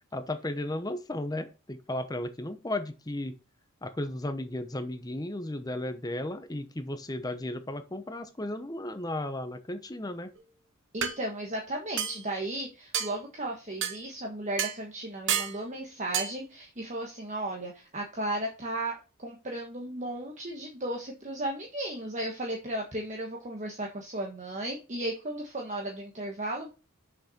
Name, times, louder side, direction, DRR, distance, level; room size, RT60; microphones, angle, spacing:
voice 1, 0.0-3.3 3.8-10.3, left 1 dB, 15° left, 9 dB, 0.7 m, -35 dB
sound 1, 10.4-10.5 11.0-11.2 12.0-12.2 12.9-13.1 13.8-14.0 14.6-14.8 15.3-15.6 16.1-16.3, right 8 dB, 55° right, 1.0 m, -29 dB
voice 2, 10.9-26.7, right 1 dB, 35° right, 0 dB, 1.3 m, -35 dB
6.7 x 5.7 x 4.2 m, 0.31 s
head